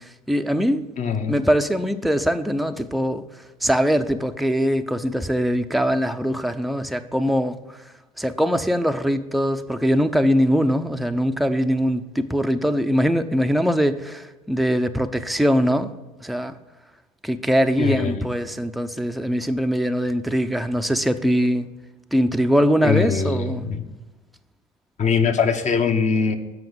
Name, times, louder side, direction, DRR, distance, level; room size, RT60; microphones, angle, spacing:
voice 1, 0.0-0.9 1.3-3.3 3.6-7.6 8.2-15.9 16.2-16.5 17.2-21.7 22.1-23.7, equal, ahead, 0.6 m, -22 dB
voice 2, 1.0-1.3 17.8-18.3 22.8-23.9 25.0-26.4, left 5 dB, 40° left, 1.1 m, -22 dB
7.7 x 5.5 x 6.9 m
hypercardioid pair, 70°, 18 cm